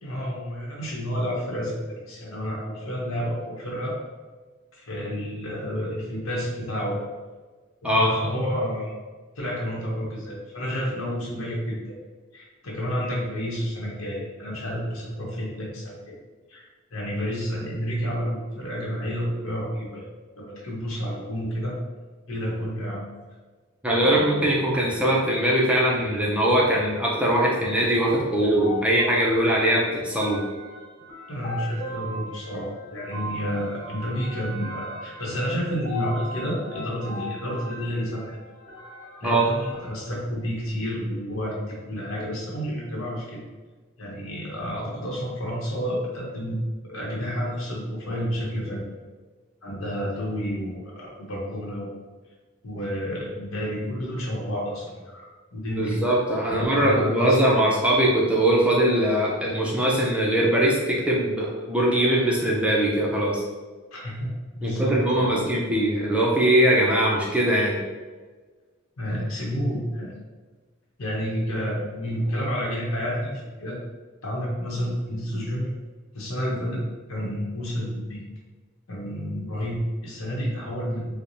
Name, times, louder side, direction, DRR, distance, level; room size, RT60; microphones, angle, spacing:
voice 1, 0.0-3.9 4.8-7.0 7.8-9.0 9.4-12.0 12.3-16.1 16.5-16.6 16.9-20.1 20.4-21.7 22.3-23.0 23.9-24.4 31.3-38.4 39.2-43.4 44.0-46.6 46.9-48.8 49.6-51.9 52.6-55.3 55.5-56.0 56.4-57.7 63.9-65.5 69.0-70.1 71.0-73.8 74.2-75.7 76.1-76.8 77.1-78.2 78.9-81.1, equal, 75° left, -4 dB, 0.9 m, -30 dB
voice 2, 7.8-8.2 23.8-30.4 39.2-39.4 55.8-63.4 64.6-67.8, right 1 dB, 5° right, -4 dB, 0.5 m, -21 dB
sound 1, 28.6-39.9, left 1 dB, 25° left, 1.4 m, -39 dB
4.5 x 2.1 x 2.6 m, 1.4 s
head